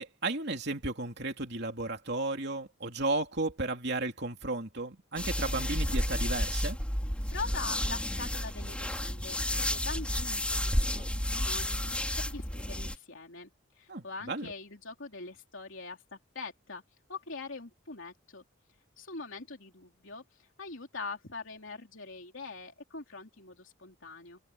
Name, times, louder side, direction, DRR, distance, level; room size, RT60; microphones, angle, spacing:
voice 1, 0.0-6.8 13.9-14.5, right 2 dB, 55° right, 3.0 m, -34 dB
sound 1, 5.2-13.0, left 1 dB, 5° left, 3.7 m, -31 dB
voice 2, 7.3-16.8 17.1-18.4 19.0-24.4, left 4 dB, 70° left, 3.2 m, -43 dB
open air
head